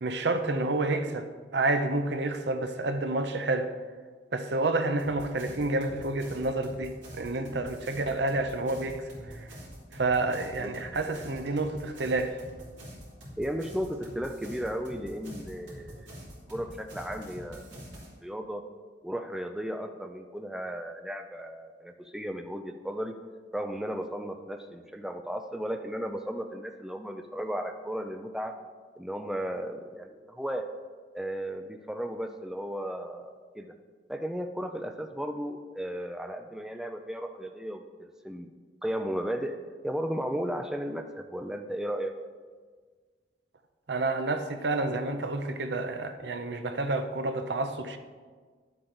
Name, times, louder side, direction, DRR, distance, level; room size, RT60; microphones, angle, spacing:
voice 1, 0.0-3.7 4.3-9.5 9.9-12.4 43.9-48.0, right 2 dB, 65° right, 0.7 m, -29 dB
sound 1, 5.0-18.1, equal, 85° right, 3.2 m, -46 dB
voice 2, 10.6-11.1 13.4-15.9 16.5-17.7 18.2-18.6 19.0-23.2 23.5-28.6 29.0-30.7 31.1-33.7 34.1-38.5 38.8-39.6 39.8-42.2, equal, 5° right, 0.4 m, -35 dB
11.0 x 7.8 x 3.9 m
head